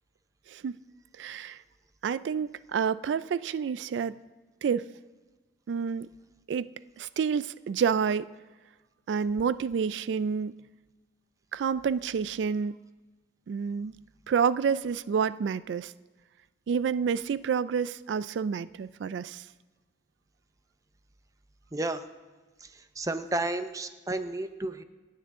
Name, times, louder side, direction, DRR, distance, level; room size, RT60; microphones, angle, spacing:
voice 1, 1.2-1.6 2.0-4.2 4.6-4.9 5.7-6.1 6.5-6.7 7.0-8.3 9.1-10.6 11.5-12.8 13.5-13.9 14.3-15.9 16.7-19.4, right 6 dB, 85° right, 17 dB, 0.3 m, -29 dB
voice 2, 21.7-22.0 23.0-24.8, right 2 dB, 20° right, 10 dB, 0.7 m, -31 dB
26.5 x 9.7 x 3.7 m, 1.3 s
head